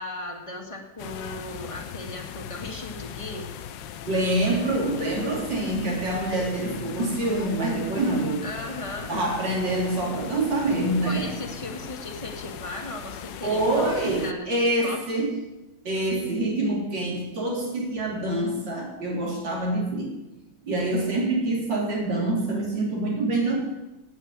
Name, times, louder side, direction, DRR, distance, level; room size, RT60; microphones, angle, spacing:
voice 1, 0.0-3.5 8.4-9.1 11.0-15.3, left 1 dB, 20° left, 3 dB, 1.7 m, -37 dB
sound 1, 1.0-14.3, left 9 dB, 80° left, 1.4 m, -39 dB
voice 2, 4.1-8.4 9.1-11.3 13.4-15.4 15.8-20.1 20.6-23.6, right 2 dB, 90° right, -2 dB, 3.9 m, -26 dB
10.0 x 8.3 x 9.4 m, 1.0 s
omnidirectional pair, 1.9 m